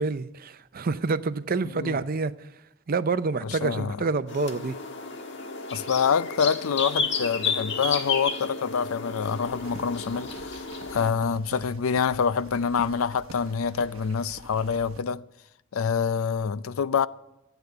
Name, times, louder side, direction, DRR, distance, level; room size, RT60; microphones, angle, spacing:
voice 1, 0.0-2.3 2.9-4.8, right 4 dB, 45° right, 0.5 m, -27 dB
voice 2, 3.4-4.0 5.7-10.6 10.9-15.2 15.7-17.1, left 6 dB, 80° left, 0.4 m, -26 dB
sound 1, 4.3-11.1, left 4 dB, 60° left, 1.4 m, -32 dB
sound 2, 9.4-15.0, right 3 dB, 70° right, 0.8 m, -47 dB
14.5 x 8.3 x 8.3 m
head